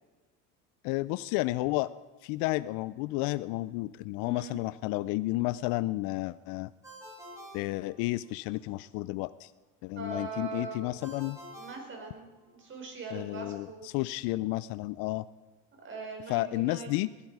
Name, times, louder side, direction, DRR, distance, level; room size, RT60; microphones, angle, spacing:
voice 1, 0.8-1.9 2.2-6.7 7.5-9.5 9.8-11.4 13.1-15.3 16.3-17.1, left 19 dB, 70° left, 16 dB, 0.5 m, -31 dB
voice 2, 4.2-4.6 10.0-10.9 11.5-12.3 12.6-13.8 15.8-17.0, right 3 dB, 35° right, 2 dB, 4.9 m, -41 dB
Ringtone, 6.8-8.5 11.0-12.7, equal, 10° right, 4.6 m, -49 dB
20.5 x 12.0 x 4.8 m, 1.3 s
supercardioid pair, 110°, 35 cm